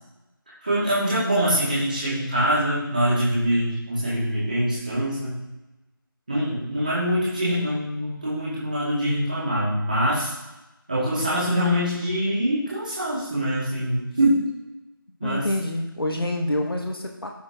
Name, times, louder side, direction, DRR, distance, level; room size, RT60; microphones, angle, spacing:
voice 1, 0.6-5.3 6.3-10.3 10.9-14.4 15.2-15.5, equal, 20° right, -8 dB, 2.1 m, -24 dB
voice 2, 15.2-17.3, left 1 dB, 75° left, 2 dB, 1.6 m, -27 dB
12.5 x 4.9 x 3.7 m, 1.0 s
figure-of-eight pair, 175°, 12 cm